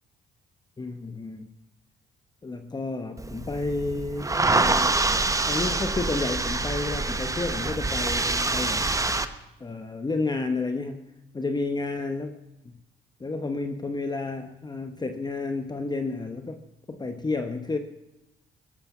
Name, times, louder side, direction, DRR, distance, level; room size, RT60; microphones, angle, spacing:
voice 1, 0.8-1.5 2.4-5.0 5.5-8.9 9.6-12.3 13.2-17.8, left 3 dB, 20° left, 7 dB, 0.9 m, -31 dB
sound 1, 3.2-9.3, right 3 dB, 15° right, 0.9 m, -26 dB
17.5 x 13.0 x 6.0 m, 0.97 s
cardioid pair, 90°, 20 cm